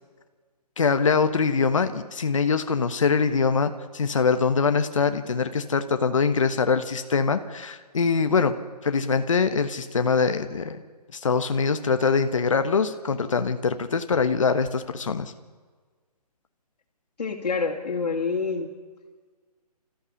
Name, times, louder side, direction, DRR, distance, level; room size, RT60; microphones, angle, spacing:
voice 1, 0.8-8.6 8.8-10.8 11.1-15.3, left 5 dB, 55° left, 9 dB, 1.2 m, -23 dB
voice 2, 17.2-18.7, left 4 dB, 80° left, -2 dB, 2.8 m, -27 dB
25.5 x 14.5 x 7.1 m, 1.5 s
hypercardioid pair, 180°, 20 cm